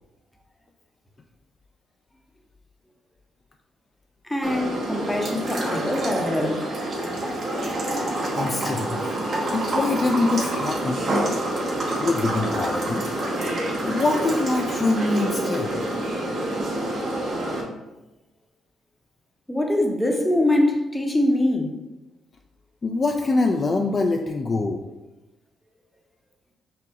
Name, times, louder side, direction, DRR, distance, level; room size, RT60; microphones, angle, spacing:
voice 1, 4.2-6.6 19.5-21.8, left 1 dB, 5° left, 2 dB, 0.7 m, -23 dB
sound 1, 4.4-17.6, right 1 dB, 55° right, 1.2 m, -27 dB
voice 2, 8.3-9.2 9.5-11.1 12.0-13.1 13.8-15.7 22.8-24.8, left 3 dB, 35° left, 3 dB, 0.3 m, -24 dB
5.7 x 2.0 x 3.5 m, 1.0 s
cardioid pair, 90°, 0 cm